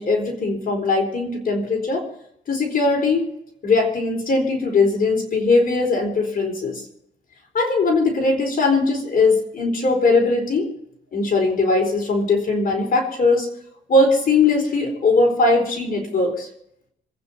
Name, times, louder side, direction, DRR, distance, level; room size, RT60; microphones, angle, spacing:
voice 1, 0.0-2.1 2.5-3.2 3.6-6.8 7.5-10.7 11.1-13.5 13.9-16.5, left 3 dB, 45° left, 3 dB, 4.3 m, -20 dB
27.0 x 9.4 x 4.4 m, 0.74 s
cardioid pair, 90°, 20 cm